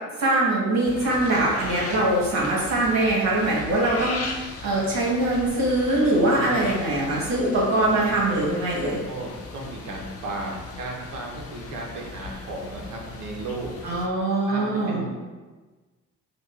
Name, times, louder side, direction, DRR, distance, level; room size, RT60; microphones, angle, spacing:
voice 1, 0.2-9.0 13.8-15.0, right 2 dB, 65° right, -5 dB, 1.3 m, -23 dB
sound 1, 0.9-14.1, left 3 dB, 50° left, 0.5 m, -38 dB
voice 2, 6.1-6.8 8.8-13.8 14.5-15.1, right 2 dB, 80° right, 0 dB, 0.8 m, -35 dB
5.3 x 2.3 x 2.4 m, 1.3 s
cardioid pair, 90°, 30 cm